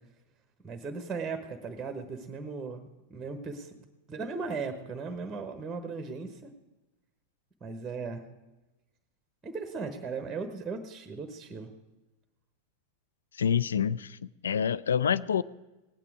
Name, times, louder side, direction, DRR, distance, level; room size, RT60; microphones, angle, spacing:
voice 1, 0.6-3.7 4.1-6.5 7.6-8.2 9.4-11.7, right 4 dB, 15° right, 8 dB, 1.1 m, -37 dB
voice 2, 13.4-14.2 14.4-15.4, left 8 dB, 65° left, 18 dB, 0.3 m, -27 dB
18.0 x 9.0 x 4.8 m, 1.1 s
figure-of-eight pair, 90°, 0 cm